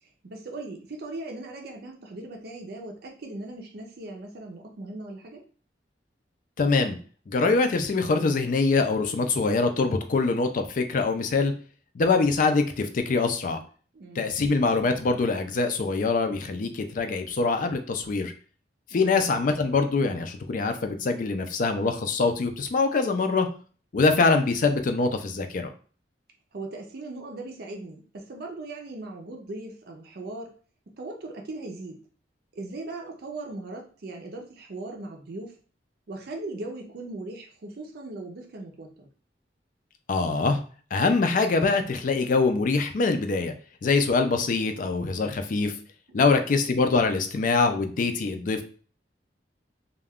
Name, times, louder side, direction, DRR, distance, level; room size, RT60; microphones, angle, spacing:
voice 1, 0.0-5.4 13.9-14.4 18.9-19.2 26.5-30.5 31.0-32.0 32.5-35.6 36.1-39.1 46.2-46.6, right 2 dB, 60° right, 1 dB, 0.5 m, -39 dB
voice 2, 6.6-7.0 7.3-11.5 11.9-13.6 14.2-18.3 18.9-23.5 23.9-25.7 40.1-40.6 40.9-43.5 43.8-45.7 46.1-48.6, left 4 dB, 50° left, 7 dB, 0.4 m, -24 dB
2.4 x 2.2 x 3.4 m, 0.40 s
head